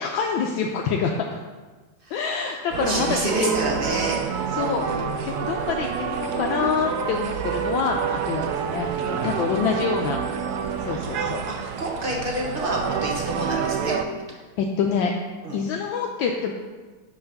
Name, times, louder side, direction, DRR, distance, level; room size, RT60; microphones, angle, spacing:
voice 1, 0.0-1.4 2.1-3.7 4.5-4.9 5.3-10.2 10.8-11.4 14.6-15.1 15.5-16.5, left 5 dB, 75° left, 1 dB, 1.3 m, -26 dB
voice 2, 2.0-2.5 2.9-5.0 8.4-8.6 10.9-14.0 14.3-14.4 15.4-15.6, right 1 dB, 40° right, -2 dB, 0.8 m, -29 dB
sound 1, 2.7-14.0, right 7 dB, 85° right, 0.8 m, -28 dB
5.7 x 5.7 x 5.3 m, 1.3 s
omnidirectional pair, 2.3 m